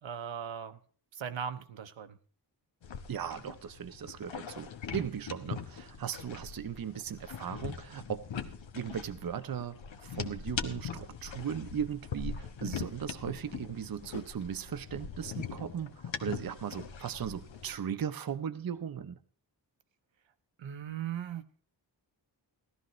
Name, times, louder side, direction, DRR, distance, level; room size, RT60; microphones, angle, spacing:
voice 1, 0.0-0.8 1.1-2.2 20.6-21.4, right 8 dB, 85° right, 0.9 m, -38 dB
sound 1, 2.8-17.8, left 7 dB, 90° left, 1.1 m, -42 dB
voice 2, 3.1-8.3 8.7-19.2, right 8 dB, 50° right, 0.7 m, -37 dB
17.0 x 12.5 x 3.1 m
wide cardioid pair, 110°, 44 cm